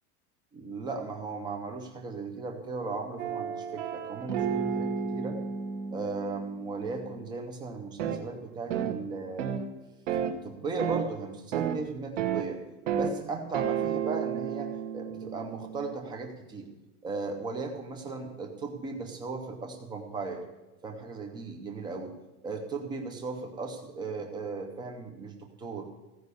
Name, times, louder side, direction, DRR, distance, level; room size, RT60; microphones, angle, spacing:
voice 1, 0.5-5.4 5.9-9.6 10.4-12.6 12.9-16.7 17.0-20.4 20.8-22.2 22.4-25.9, right 4 dB, 10° right, 4 dB, 0.6 m, -37 dB
sound 1, 3.2-7.2 8.0-8.2 8.7-9.0 9.4-9.7 10.1-10.3 10.8-11.1 11.5-11.8 12.2-12.5 12.9-13.2 13.5-16.0, right 7 dB, 50° right, 1.2 m, -32 dB
16.0 x 5.4 x 8.1 m, 1.0 s
supercardioid pair, 180°, 45 cm